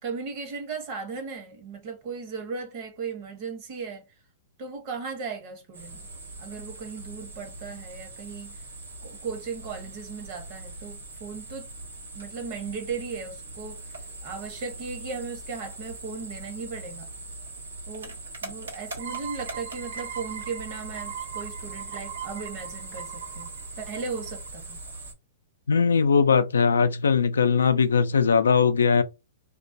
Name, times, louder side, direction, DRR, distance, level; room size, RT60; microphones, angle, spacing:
voice 1, 0.0-4.1 4.6-6.1 6.4-8.6 9.0-11.7 12.1-13.8 14.2-17.1 17.9-24.8, right 5 dB, 45° right, 0.9 m, -37 dB
sound 1, 5.7-25.1, right 2 dB, 90° right, 0.9 m, -41 dB
sound 2, 19.0-24.5, right 9 dB, 75° right, 0.4 m, -40 dB
voice 2, 25.7-29.0, left 5 dB, 90° left, 0.3 m, -20 dB
2.3 x 2.1 x 2.6 m
hypercardioid pair, 120°, 0 cm